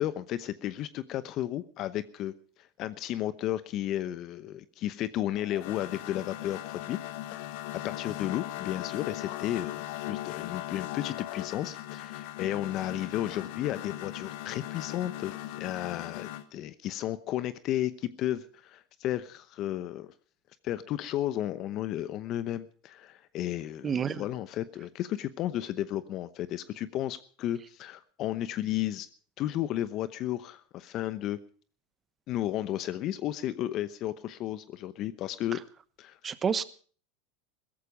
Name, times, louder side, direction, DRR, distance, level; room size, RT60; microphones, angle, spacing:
voice 1, 0.0-2.3 2.6-7.0 7.3-7.4 7.8-20.1 20.6-29.1 29.4-31.4 32.3-35.6 36.0-36.2, left 13 dB, 45° left, 14 dB, 0.9 m, -33 dB
sound 1, 5.3-16.4, left 14 dB, 65° left, 1.2 m, -39 dB
voice 2, 23.8-24.2 35.5-35.6 36.2-36.7, right 7 dB, 25° right, 16 dB, 1.1 m, -29 dB
16.5 x 14.5 x 5.1 m, 0.43 s
hypercardioid pair, 105°, 0 cm